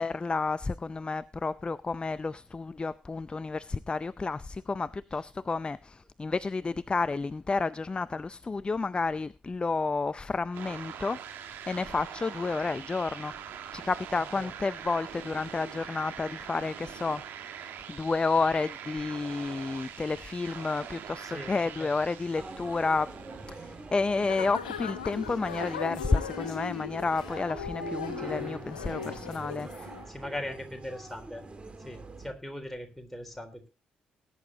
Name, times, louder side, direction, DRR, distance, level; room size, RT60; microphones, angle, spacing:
voice 1, 0.0-11.2 11.5-17.2 17.9-23.1 23.5-29.9, left 3 dB, 25° left, 0.5 m, -31 dB
sound 1, 10.5-24.2, right 8 dB, 65° right, 1.7 m, -43 dB
sound 2, 22.3-32.3, right 3 dB, 30° right, 2.1 m, -43 dB
sound 3, 24.3-30.0, left 7 dB, 85° left, 1.0 m, -38 dB
voice 2, 30.1-31.4 31.8-33.7, left 1 dB, 5° left, 3.7 m, -39 dB
20.0 x 9.8 x 2.8 m
figure-of-eight pair, 40°, 4 cm